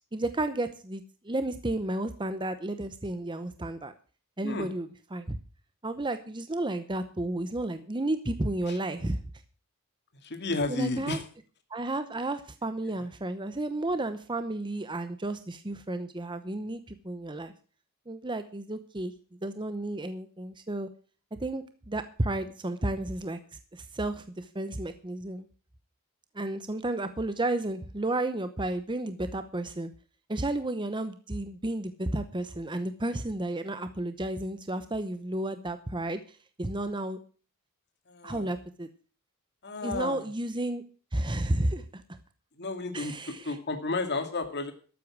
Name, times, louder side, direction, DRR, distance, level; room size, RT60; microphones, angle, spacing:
voice 1, 0.1-3.9 4.4-5.4 5.8-9.2 10.7-11.2 11.7-17.5 18.1-19.1 19.4-20.9 21.3-23.4 23.7-25.5 26.3-29.9 30.3-37.2 38.2-38.9 39.8-40.8 41.1-42.2 42.9-43.5, right 1 dB, 20° right, 10 dB, 0.8 m, -32 dB
voice 2, 10.2-11.3 12.8-12.9 38.1-38.5 39.6-40.3 42.6-44.7, left 3 dB, 50° left, 6 dB, 2.3 m, -32 dB
13.0 x 8.5 x 6.1 m, 0.39 s
head